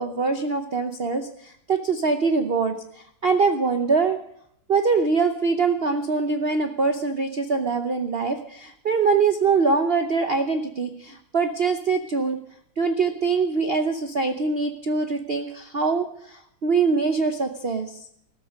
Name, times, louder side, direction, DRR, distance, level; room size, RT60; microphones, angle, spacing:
voice 1, 0.0-4.2 4.7-12.4 12.8-18.0, right 4 dB, 80° right, 7 dB, 0.5 m, -23 dB
15.0 x 13.5 x 5.2 m, 0.72 s
omnidirectional pair, 2.3 m